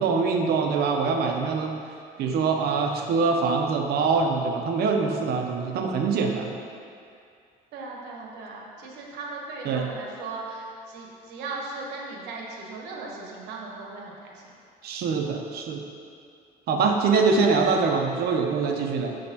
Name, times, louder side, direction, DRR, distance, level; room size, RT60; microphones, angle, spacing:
voice 1, 0.0-1.7 2.2-6.5 9.6-9.9 14.8-15.8 16.7-19.2, right 4 dB, 70° right, 3 dB, 0.7 m, -24 dB
voice 2, 7.7-14.5, right 3 dB, 90° right, -2 dB, 1.1 m, -38 dB
6.5 x 6.4 x 2.9 m, 2.4 s
cardioid pair, 110°, 17 cm